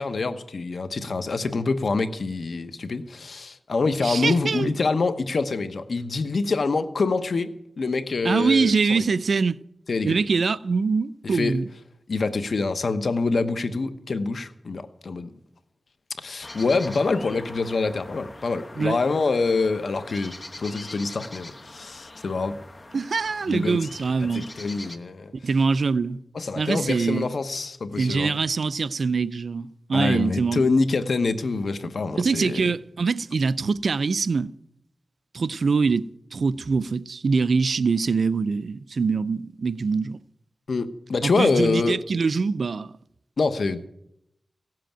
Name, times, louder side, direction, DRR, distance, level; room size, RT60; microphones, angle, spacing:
voice 1, 0.0-9.0 9.9-10.2 11.2-11.6 12.1-15.3 16.2-22.6 23.5-23.8 24.2-25.3 26.3-28.3 29.9-32.7 40.7-42.0 43.4-43.9, left 3 dB, 70° left, 1.0 m, -26 dB
voice 2, 4.0-4.7 8.2-9.6 10.0-11.7 18.8-19.0 22.9-24.5 25.4-26.2 26.6-27.3 28.0-30.6 32.2-34.5 35.3-40.2 41.2-42.9, right 4 dB, 70° right, 0.4 m, -24 dB
sound 1, 16.4-25.0, left 2 dB, 35° left, 1.0 m, -43 dB
16.0 x 7.7 x 9.0 m
wide cardioid pair, 65°, 0 cm